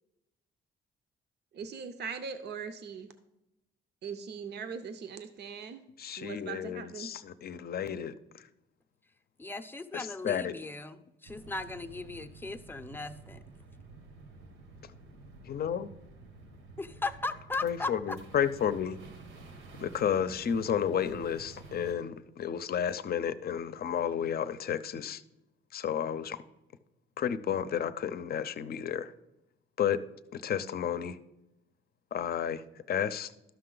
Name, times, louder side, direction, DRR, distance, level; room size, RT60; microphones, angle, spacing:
voice 1, 1.5-3.1 4.0-5.9 6.2-7.1, right 6 dB, 55° right, 9 dB, 0.7 m, -40 dB
voice 2, 6.0-8.1 9.9-10.5 15.5-15.9 17.6-19.0 19.8-25.2 25.7-26.4 27.2-29.1 29.8-30.0 30.3-31.2 32.1-32.6 32.9-33.3, left 8 dB, 50° left, 13 dB, 0.6 m, -32 dB
voice 3, 9.4-13.4 16.8-18.2, left 3 dB, 10° left, 7 dB, 0.6 m, -37 dB
sound 1, 11.3-21.9, right 3 dB, 85° right, 1.3 m, -50 dB
12.5 x 5.6 x 3.9 m, 0.91 s
cardioid pair, 90°, 20 cm